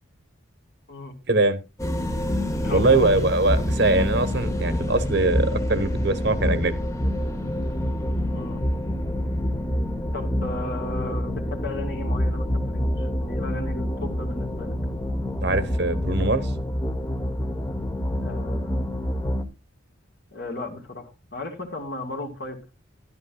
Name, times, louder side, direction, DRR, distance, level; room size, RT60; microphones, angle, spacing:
voice 1, 1.3-1.6 2.7-6.8 15.4-16.5, right 2 dB, 55° right, 1.1 m, -22 dB
sound 1, 1.8-19.4, left 1 dB, 15° left, 1.0 m, -27 dB
voice 2, 2.6-3.2 8.3-8.6 10.1-14.7 18.1-18.8 20.3-22.7, left 2 dB, 55° left, 2.4 m, -35 dB
13.0 x 12.0 x 2.3 m
head